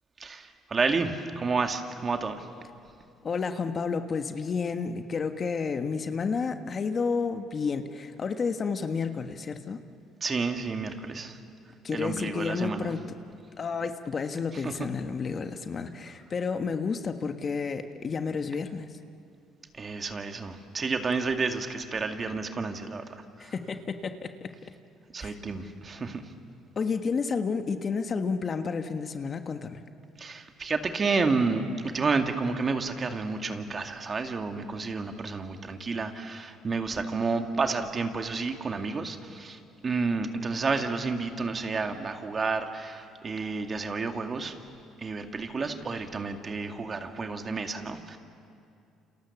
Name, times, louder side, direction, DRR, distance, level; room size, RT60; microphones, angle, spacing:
voice 1, 0.2-2.5 10.2-11.4 11.9-12.9 14.5-14.9 19.7-23.5 25.1-26.3 30.2-44.6 45.0-48.2, right 4 dB, 35° right, 5 dB, 2.2 m, -30 dB
voice 2, 3.2-9.8 11.8-13.0 13.6-18.9 23.4-24.5 25.2-25.4 26.7-29.8, left 5 dB, 40° left, 7 dB, 1.5 m, -31 dB
29.0 x 27.5 x 7.3 m, 2.5 s
supercardioid pair, 90°, 0 cm